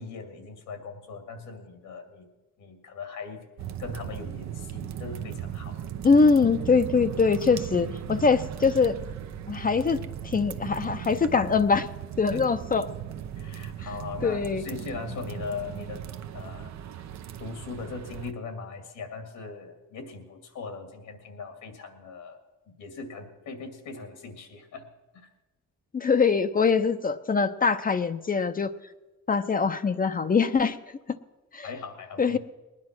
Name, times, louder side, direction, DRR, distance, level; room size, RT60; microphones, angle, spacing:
voice 1, 0.0-2.3 2.6-3.5 3.8-5.9 12.3-12.5 13.4-16.0 16.3-16.7 17.4-22.4 22.8-24.9 31.6-32.4, left 4 dB, 80° left, 6 dB, 2.4 m, -39 dB
sound 1, 3.6-18.3, right 10 dB, 65° right, 0.8 m, -37 dB
voice 2, 6.0-9.0 9.5-10.0 10.2-11.9 12.2-12.9 14.2-14.6 25.9-28.7 29.3-30.8 31.5-31.7 32.2-32.4, left 5 dB, 30° left, 10 dB, 0.7 m, -23 dB
20.0 x 9.9 x 6.1 m, 1.1 s
cardioid pair, 90°, 30 cm